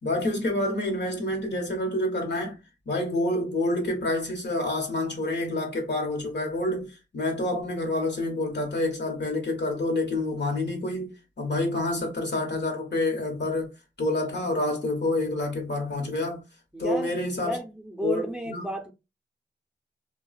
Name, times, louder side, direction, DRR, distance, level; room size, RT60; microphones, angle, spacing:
voice 1, 0.0-2.6 2.9-11.1 11.4-13.7 14.0-16.4 16.8-17.6 18.0-18.6, left 2 dB, 70° left, 1.0 m, -28 dB
voice 2, 16.7-18.9, equal, 5° right, 0.6 m, -33 dB
2.4 x 2.2 x 2.4 m
cardioid pair, 45°, 18 cm